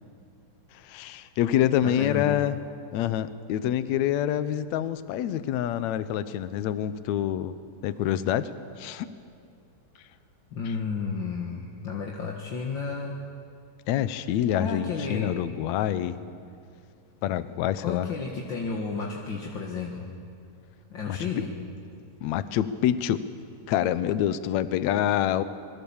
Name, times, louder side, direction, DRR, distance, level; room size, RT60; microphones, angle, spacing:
voice 1, 0.8-2.6 2.9-7.5 7.8-8.5 8.8-9.1 13.9-16.2 17.2-18.1 21.1-21.2 22.2-23.2 23.7-25.4, left 11 dB, 70° left, 13 dB, 1.9 m, -26 dB
voice 2, 1.8-2.4 10.5-13.2 14.5-15.3 17.8-20.1 20.9-21.5, left 5 dB, 45° left, -1 dB, 1.8 m, -32 dB
27.0 x 22.5 x 7.2 m, 2.4 s
omnidirectional pair, 3.8 m